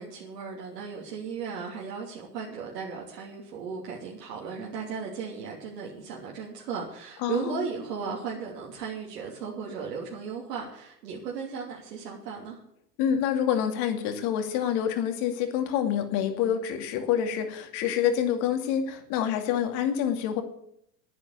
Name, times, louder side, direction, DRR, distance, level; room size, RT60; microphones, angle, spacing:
voice 1, 0.0-12.6, right 6 dB, 75° right, -3 dB, 3.1 m, -36 dB
voice 2, 7.2-7.6 13.0-20.4, left 9 dB, 55° left, 6 dB, 2.6 m, -27 dB
10.5 x 9.3 x 8.5 m, 0.72 s
hypercardioid pair, 110°, 48 cm